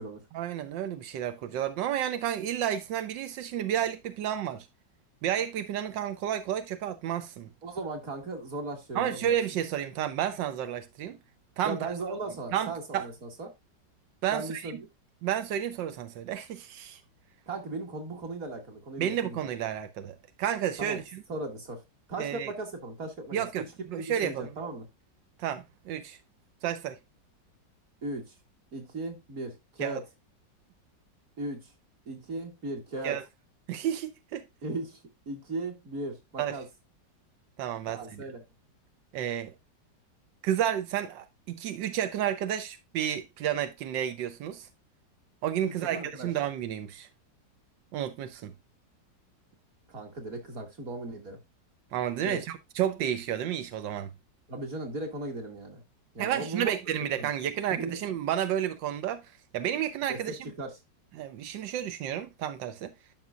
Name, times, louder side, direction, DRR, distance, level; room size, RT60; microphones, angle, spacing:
voice 1, 0.3-4.7 5.2-7.5 8.9-11.2 11.6-11.8 12.5-13.1 14.2-14.7 15.2-17.0 19.0-21.2 22.2-22.5 23.3-23.6 23.9-24.5 25.4-26.2 26.6-27.0 29.8-30.0 33.0-33.2 33.7-34.5 36.4-36.6 37.6-38.2 39.1-39.5 40.4-44.7 45.4-47.1 47.9-48.5 51.9-54.1 56.2-59.2 59.5-60.4 61.2-62.9, right 10 dB, 90° right, 1.5 m, -31 dB
voice 2, 7.6-9.4 11.6-13.5 14.3-14.8 17.5-19.4 20.8-21.0 21.3-21.8 22.1-23.4 24.0-24.9 28.0-28.3 28.7-30.0 31.4-31.7 32.1-33.2 34.6-35.0 35.3-36.7 37.9-38.4 45.6-46.3 49.9-51.4 52.2-52.4 54.5-55.8 56.1-56.7 57.2-57.4 57.7-58.0 60.1-60.8, right 2 dB, 50° right, 2.6 m, -37 dB
12.0 x 5.7 x 2.4 m
omnidirectional pair, 2.0 m